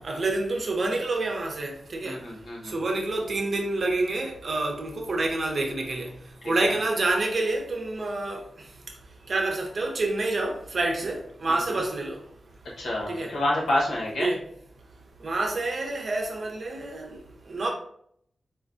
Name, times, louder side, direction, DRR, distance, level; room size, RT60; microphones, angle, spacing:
voice 1, 0.0-2.2 2.6-6.1 6.4-8.4 9.3-12.2 13.1-13.4 14.2-14.4 15.2-17.2 17.5-17.7, right 2 dB, 55° right, 0.7 m, -28 dB
voice 2, 2.0-2.8 6.4-6.8 11.5-11.8 12.8-14.3, left 1 dB, 90° left, 1.1 m, -29 dB
4.3 x 2.2 x 2.5 m
wide cardioid pair, 125°, 0 cm